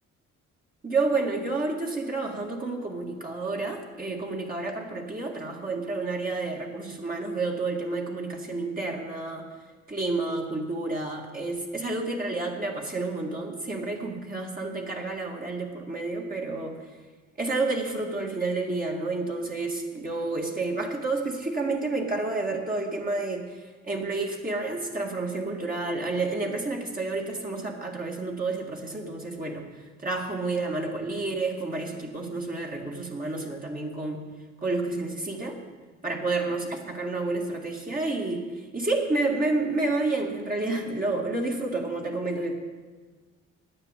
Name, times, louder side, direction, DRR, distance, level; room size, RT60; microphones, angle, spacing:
voice 1, 0.8-9.5 9.9-16.8 17.4-23.6 23.9-29.7 30.0-34.2 34.6-35.6 36.0-38.5 38.7-42.5, right 3 dB, 30° right, 0 dB, 2.0 m, -30 dB
9.8 x 9.3 x 8.3 m, 1.4 s
cardioid pair, 90°, 30 cm